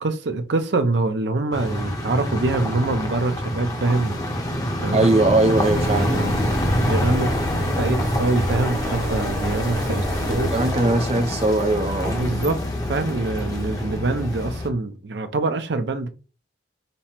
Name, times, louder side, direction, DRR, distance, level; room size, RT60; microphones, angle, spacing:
voice 1, 0.0-4.3 4.8-5.1 6.6-7.5 7.8-10.5 12.1-16.1, right 2 dB, 80° right, 0.6 m, -25 dB
sound 1, 1.5-14.7, left 1 dB, 20° left, 0.8 m, -26 dB
voice 2, 4.9-6.3 10.3-12.2, right 2 dB, 35° right, 0.6 m, -21 dB
sound 2, 5.6-10.7, equal, 55° right, 1.2 m, -27 dB
5.3 x 2.1 x 4.3 m
head